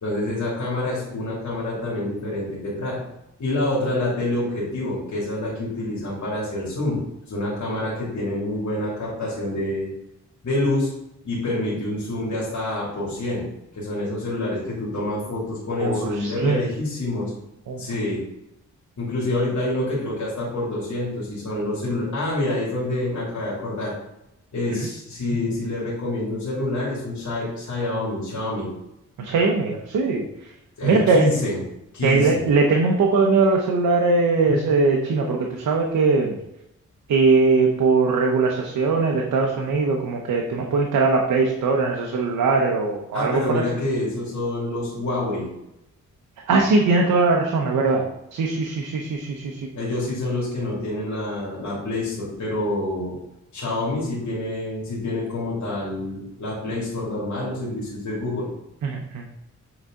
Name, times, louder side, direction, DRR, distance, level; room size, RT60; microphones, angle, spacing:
voice 1, 0.0-3.0 3.4-7.0 7.3-9.9 10.4-10.9 11.2-13.4 13.7-17.3 17.8-18.2 19.0-23.9 24.5-28.7 30.8-31.6 31.9-32.4 34.5-34.7 43.1-45.5 49.7-53.2 53.5-58.5, left 2 dB, 70° left, -5 dB, 2.5 m, -27 dB
voice 2, 15.8-16.6 17.7-17.8 24.7-24.8 29.2-30.2 30.8-31.3 32.0-36.3 37.1-43.6 46.5-48.0 48.3-49.6 58.8-59.2, right 3 dB, 90° right, 1 dB, 0.9 m, -20 dB
7.9 x 4.1 x 3.7 m, 0.85 s
cardioid pair, 80°, 30 cm